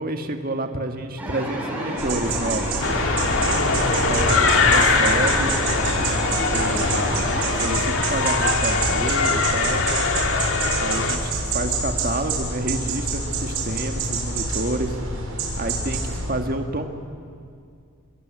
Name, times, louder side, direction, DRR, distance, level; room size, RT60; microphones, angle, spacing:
voice 1, 0.0-2.7 3.9-5.5 6.5-9.8 10.7-15.0 15.6-16.9, right 1 dB, 40° right, 5 dB, 1.8 m, -29 dB
sound 1, 1.2-7.6, equal, 5° right, 5.6 m, -30 dB
sound 2, 2.0-16.3, right 3 dB, 80° right, 7.1 m, -27 dB
sound 3, 2.8-11.2, left 4 dB, 60° left, 2.4 m, -22 dB
28.5 x 21.5 x 9.6 m, 2.2 s
head